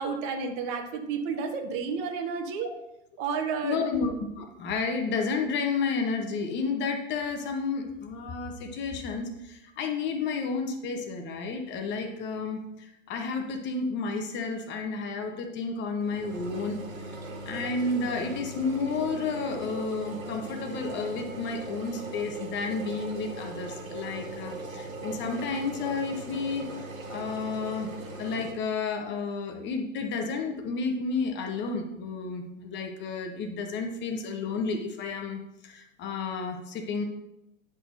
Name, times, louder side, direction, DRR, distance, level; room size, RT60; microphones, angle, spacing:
voice 1, 0.0-2.7 3.2-3.8, right 5 dB, 40° right, 5 dB, 1.2 m, -31 dB
voice 2, 3.6-16.8 17.5-27.9 28.2-37.0, left 4 dB, 25° left, 5 dB, 0.9 m, -31 dB
sound 1, 16.0-28.5, right 3 dB, 90° right, 1.5 m, -39 dB
9.7 x 6.0 x 2.7 m, 0.85 s
hypercardioid pair, 110°, 40 cm